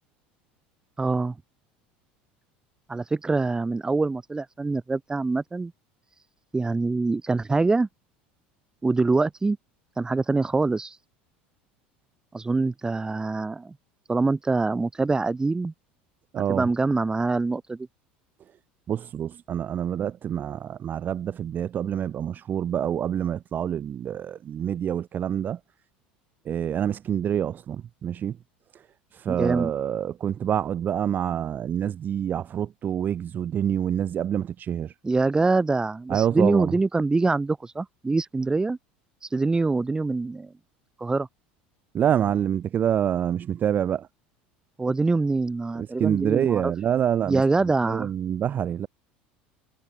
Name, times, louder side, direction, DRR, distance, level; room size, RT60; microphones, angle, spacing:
voice 1, 1.0-1.3 2.9-5.7 6.5-7.9 8.8-9.6 10.0-11.0 12.3-13.7 14.1-15.7 16.5-17.9 29.3-29.7 35.0-38.8 39.3-40.5 41.0-41.3 44.8-46.7 47.3-48.1, right 3 dB, 15° right, 0.8 m, -24 dB
voice 2, 16.3-16.6 18.9-25.6 26.5-28.4 29.1-34.9 36.1-36.7 41.9-44.1 45.8-48.9, right 9 dB, 35° right, 0.4 m, -26 dB
hypercardioid pair, 85°, 5 cm